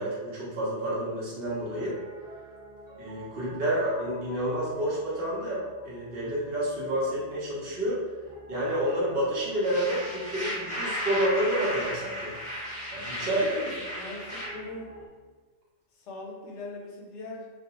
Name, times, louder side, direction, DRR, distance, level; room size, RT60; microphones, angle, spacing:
voice 1, 0.0-2.0 3.0-8.0 8.5-12.4 12.9-13.5, right 1 dB, 55° right, -7 dB, 0.8 m, -29 dB
Piano, 1.4-15.1, right 1 dB, 30° right, 0.3 m, -49 dB
sound 1, 9.6-14.5, equal, 5° left, 1.1 m, -35 dB
voice 2, 13.2-15.0 15.9-17.5, left 2 dB, 80° left, -1 dB, 0.9 m, -40 dB
2.3 x 2.2 x 2.8 m, 1.4 s
omnidirectional pair, 1.2 m